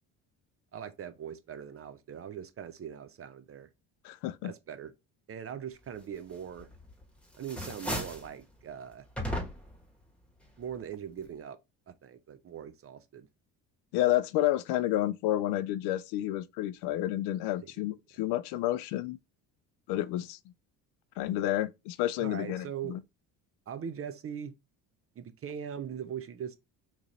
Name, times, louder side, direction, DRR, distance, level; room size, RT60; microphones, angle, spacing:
voice 1, 0.7-3.7 4.4-4.9 5.3-6.7 7.4-9.1 10.6-11.6 11.9-13.3 17.6-17.7 22.2-23.0 23.7-24.5 25.2-26.6, right 8 dB, 35° right, 0.5 m, -41 dB
voice 2, 4.0-4.5 13.9-19.2 19.9-20.4 21.2-23.0, left 14 dB, 75° left, 0.5 m, -30 dB
sound 1, 6.6-7.0 7.3-8.3 9.2-9.8, equal, 5° left, 1.2 m, -35 dB
3.1 x 2.5 x 4.0 m
supercardioid pair, 80°, 40 cm